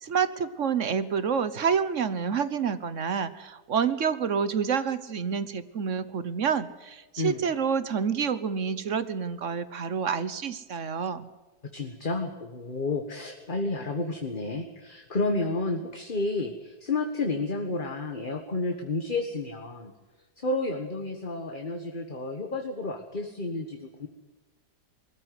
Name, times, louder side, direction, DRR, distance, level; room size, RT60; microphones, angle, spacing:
voice 1, 0.0-11.3, right 6 dB, 50° right, 14 dB, 1.3 m, -28 dB
voice 2, 11.7-19.9 20.4-24.1, left 2 dB, 30° left, 4 dB, 1.6 m, -31 dB
21.0 x 14.5 x 9.7 m, 1.2 s
omnidirectional pair, 1.8 m